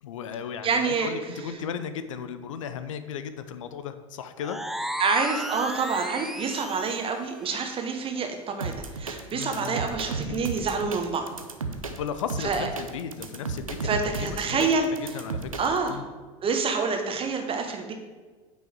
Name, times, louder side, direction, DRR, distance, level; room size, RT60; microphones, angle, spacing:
voice 1, 0.0-4.6 9.3-9.8 10.2-10.5 11.7-14.7 15.1-15.5 15.9-16.0, left 7 dB, 70° left, 11 dB, 0.6 m, -35 dB
voice 2, 0.6-1.1 5.0-11.3 12.4-12.7 13.8-14.9 15.6-15.9 16.4-17.9, right 4 dB, 35° right, 5 dB, 1.3 m, -27 dB
sound 1, 4.4-7.1, equal, ahead, 0.5 m, -34 dB
sound 2, 8.6-15.9, right 4 dB, 85° right, 0.7 m, -34 dB
9.0 x 5.4 x 4.8 m, 1.4 s
figure-of-eight pair, 70°, 17 cm